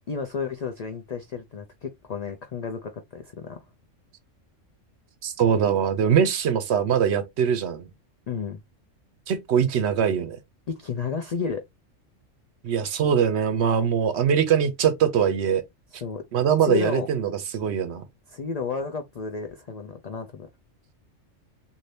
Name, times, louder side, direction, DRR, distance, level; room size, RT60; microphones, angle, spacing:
voice 1, 0.1-3.6 8.3-8.6 10.7-11.6 15.9-16.2 16.6-17.1 18.3-20.5, left 5 dB, 90° left, 0.3 m, -32 dB
voice 2, 5.2-7.9 9.3-10.4 12.6-15.6 16.3-18.0, right 8 dB, 65° right, 0.8 m, -22 dB
2.7 x 2.6 x 3.2 m
omnidirectional pair, 1.3 m